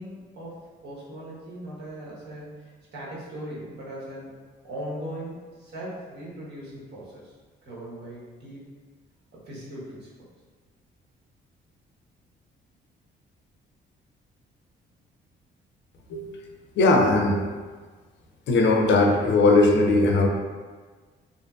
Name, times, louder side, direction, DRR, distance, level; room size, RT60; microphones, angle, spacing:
voice 1, 0.0-4.3 4.6-7.3 7.6-8.6 9.3-10.3, right 1 dB, 55° right, -7 dB, 1.0 m, -39 dB
voice 2, 16.8-17.4 18.5-20.3, left 2 dB, 65° left, 1 dB, 0.5 m, -19 dB
2.6 x 2.4 x 2.3 m, 1.4 s
cardioid pair, 90°, 20 cm